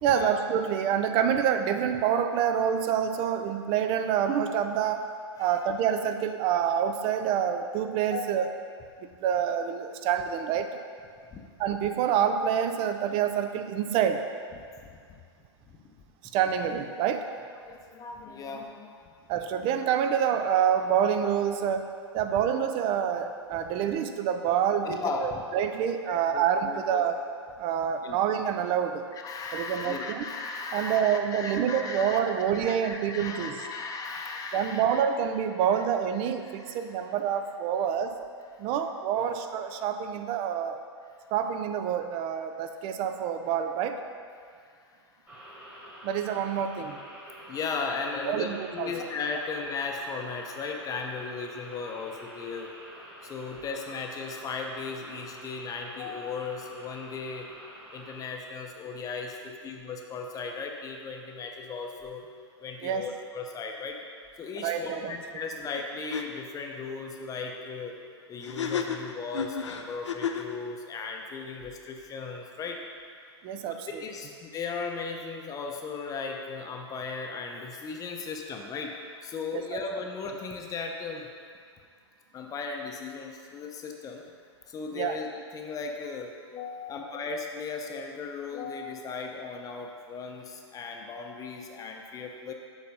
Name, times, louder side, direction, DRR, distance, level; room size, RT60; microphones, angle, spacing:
voice 1, 0.0-5.1 5.4-8.5 9.2-10.7 11.6-14.2 16.3-17.3 19.3-21.8 22.1-27.2 27.6-29.1 29.5-30.3 30.7-33.6 34.5-38.2 38.6-40.8 41.3-44.0 46.0-47.0 48.2-48.9 62.8-63.1 64.6-65.1 73.4-73.9 79.5-79.8 84.9-85.2, right 8 dB, 40° right, 7 dB, 0.5 m, -27 dB
voice 2, 8.1-8.5 11.3-11.5 14.9-15.2 15.7-15.9 17.6-19.1 23.7-23.8 24.8-25.4 26.1-27.0 28.0-28.2 29.1-35.0 36.5-37.1 38.6-38.7 39.2-39.3 47.4-52.7 53.2-57.5 57.9-62.2 62.6-64.0 64.4-67.9 68.3-72.8 73.7-81.3 82.3-84.2 84.7-92.5, left 4 dB, 25° left, 2 dB, 0.7 m, -37 dB
sound 1, 45.3-58.2, right 1 dB, 15° right, 1.7 m, -47 dB
sound 2, 65.7-65.8 66.1-66.2 68.4-70.5, left 7 dB, 85° left, 0.5 m, -32 dB
6.9 x 4.0 x 5.3 m, 2.2 s
hypercardioid pair, 110°, 15 cm